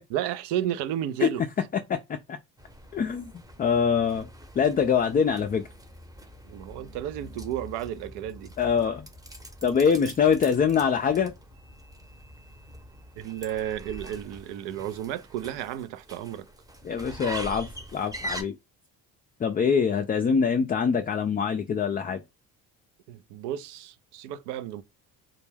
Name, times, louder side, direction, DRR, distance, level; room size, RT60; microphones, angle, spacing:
voice 1, 0.1-1.4 6.4-8.5 13.2-16.5 23.1-24.8, right 11 dB, 75° right, 0.5 m, -32 dB
voice 2, 1.9-2.4 2.9-3.3 3.6-4.3 4.6-5.6 8.6-9.1 9.6-11.3 16.8-18.5 19.4-22.2, left 6 dB, 25° left, 0.3 m, -24 dB
sound 1, 2.6-18.4, right 1 dB, 10° right, 0.8 m, -43 dB
2.2 x 2.1 x 3.2 m
supercardioid pair, 65°, 42 cm